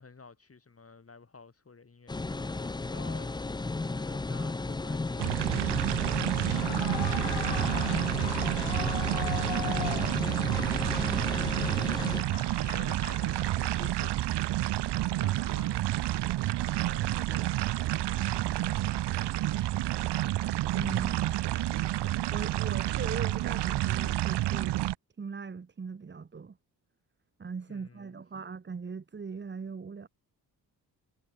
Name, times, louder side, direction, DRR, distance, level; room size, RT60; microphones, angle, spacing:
voice 1, 0.0-12.3 12.6-14.5 15.1-15.9 16.6-19.9 27.7-28.2, left 4 dB, 35° left, 3.5 m, -52 dB
sound 1, 2.1-12.2, left 3 dB, 10° left, 0.5 m, -34 dB
sound 2, 5.2-24.9, right 15 dB, 85° right, 0.8 m, -29 dB
Clapping / Cheering / Applause, 6.4-13.8, left 14 dB, 85° left, 0.9 m, -41 dB
voice 2, 11.0-11.4 20.8-21.4 22.3-24.8 25.2-26.6 27.4-30.1, right 5 dB, 25° right, 1.0 m, -39 dB
cardioid pair, 70°, 40 cm